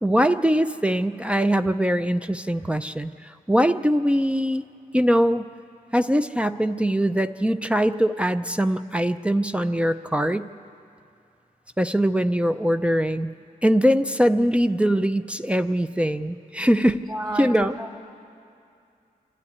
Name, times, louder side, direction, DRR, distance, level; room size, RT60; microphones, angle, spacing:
voice 1, 0.0-4.6 4.9-5.5 5.9-10.5 11.8-13.3 13.6-17.0 17.4-17.7, equal, 10° right, 10 dB, 0.4 m, -22 dB
voice 2, 16.8-18.0, right 1 dB, 25° right, 2 dB, 2.1 m, -32 dB
26.5 x 13.0 x 9.5 m, 2.5 s
wide cardioid pair, 155°, 15 cm